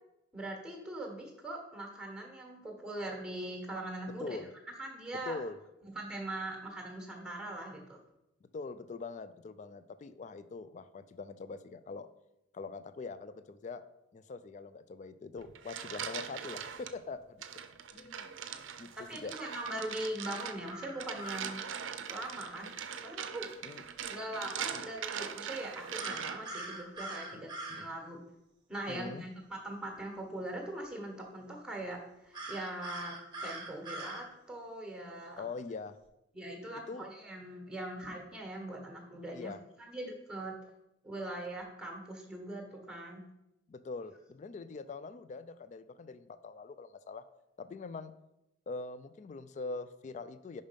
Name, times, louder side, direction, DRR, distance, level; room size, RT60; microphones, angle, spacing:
voice 1, 0.3-5.4 5.9-8.0 17.9-18.3 19.1-21.6 22.1-22.7 23.0-23.5 24.1-28.2 28.7-33.1 33.4-35.4 36.3-39.5 39.8-40.5 41.0-43.2, right 1 dB, 5° right, 1 dB, 1.3 m, -41 dB
voice 2, 5.3-5.6 8.5-12.1 12.5-13.8 14.1-17.4 18.0-18.3 18.8-19.3 23.6-23.8 24.7-24.8 27.3-27.9 28.9-29.3 35.4-36.0 36.7-37.1 39.3-39.6 43.7-47.2 47.6-48.1 48.7-50.6, left 4 dB, 40° left, 13 dB, 0.3 m, -43 dB
sound 1, 15.4-16.9 17.4-26.6, right 7 dB, 85° right, 0.5 m, -41 dB
sound 2, 20.2-21.6 26.0-27.9 32.3-34.2, right 2 dB, 25° right, 1.0 m, -43 dB
5.3 x 5.2 x 5.2 m, 0.88 s
head